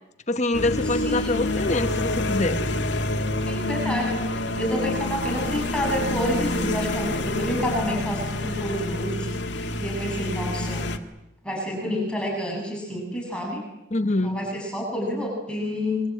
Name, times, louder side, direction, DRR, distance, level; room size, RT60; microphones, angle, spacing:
voice 1, 0.3-2.6 13.9-14.4, left 2 dB, 40° left, 1.4 m, -25 dB
sound 1, 0.5-11.0, left 1 dB, 75° left, 2.1 m, -27 dB
voice 2, 3.5-9.3 9.5-10.8 11.4-13.6 14.2-16.0, equal, 5° left, 7.7 m, -29 dB
26.0 x 23.5 x 8.9 m
head